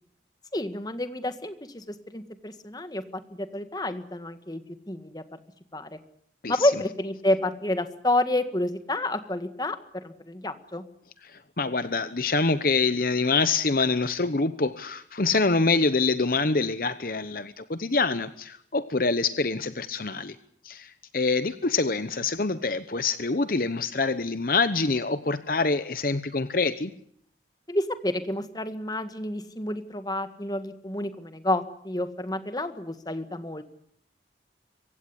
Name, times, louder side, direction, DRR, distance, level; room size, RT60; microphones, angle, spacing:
voice 1, 0.5-3.0 3.3-5.4 5.7-6.0 6.5-10.8 27.7-33.6, left 1 dB, 20° left, 10 dB, 1.7 m, -29 dB
voice 2, 11.2-20.4 20.6-26.9, left 3 dB, 55° left, 12 dB, 0.9 m, -25 dB
26.0 x 16.0 x 9.9 m, 0.67 s
head